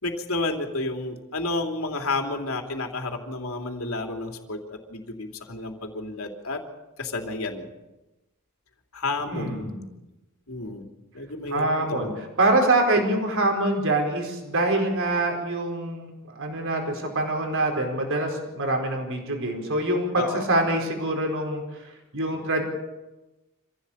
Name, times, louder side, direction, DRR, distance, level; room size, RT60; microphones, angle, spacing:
voice 1, 0.0-6.6 7.0-7.7 8.9-9.7 10.5-10.9 11.1-12.2 20.2-20.5, left 2 dB, 70° left, 3 dB, 3.2 m, -31 dB
voice 2, 9.3-9.9 11.5-12.1 12.4-22.6, right 2 dB, 65° right, 3 dB, 4.6 m, -25 dB
26.0 x 16.0 x 8.7 m, 1.0 s
head